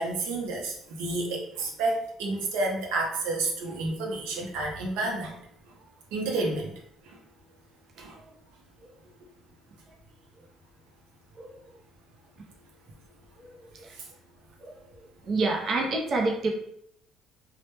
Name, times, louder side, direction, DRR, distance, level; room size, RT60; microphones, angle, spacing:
voice 1, 0.0-5.4 6.1-6.7 7.0-7.2 8.0-8.2 13.9-14.1, right 2 dB, 85° right, 0 dB, 0.5 m, -30 dB
voice 2, 15.2-16.5, right 3 dB, 40° right, -1 dB, 0.5 m, -27 dB
2.1 x 2.0 x 2.9 m, 0.70 s
cardioid pair, 115°, 0 cm